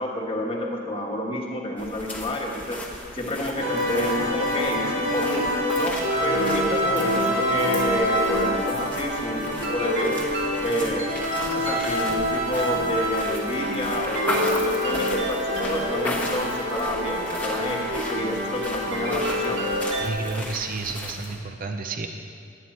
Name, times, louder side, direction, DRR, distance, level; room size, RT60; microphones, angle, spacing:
voice 1, 0.0-2.8 3.1-5.5 5.7-10.2 10.6-11.1 11.5-19.7, equal, 30° left, -1 dB, 1.4 m, -29 dB
sound 1, 1.8-21.4, left 2 dB, 10° left, 1.1 m, -36 dB
sound 2, 3.6-20.1, equal, 90° right, 1.7 m, -26 dB
voice 2, 20.0-22.1, right 3 dB, 50° right, 5 dB, 0.6 m, -31 dB
11.0 x 9.4 x 4.3 m, 2.3 s
head